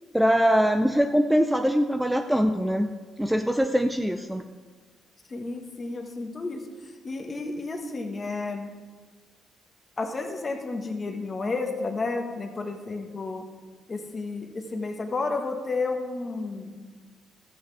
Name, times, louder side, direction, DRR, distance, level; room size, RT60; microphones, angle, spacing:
voice 1, 0.1-2.9 3.2-4.4, equal, 5° right, 6 dB, 0.4 m, -22 dB
voice 2, 5.3-6.6 7.0-8.7 10.0-13.4 13.9-16.7, left 3 dB, 30° left, 4 dB, 1.3 m, -31 dB
13.0 x 8.4 x 3.4 m, 1.5 s
cardioid pair, 90°, 0 cm